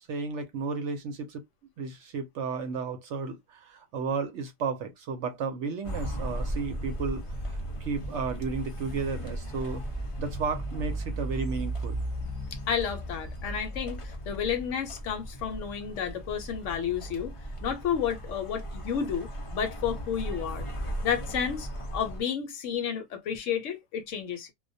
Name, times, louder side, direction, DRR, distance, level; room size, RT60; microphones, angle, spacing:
voice 1, 0.1-1.4 1.8-7.2 7.5-9.8 10.2-12.0, right 4 dB, 65° right, 0.8 m, -33 dB
sound 1, 5.8-22.2, right 1 dB, 40° left, 0.4 m, -36 dB
voice 2, 12.7-17.3 17.6-20.7 21.0-24.5, left 8 dB, 70° left, 0.9 m, -31 dB
2.2 x 2.1 x 2.6 m
omnidirectional pair, 1.4 m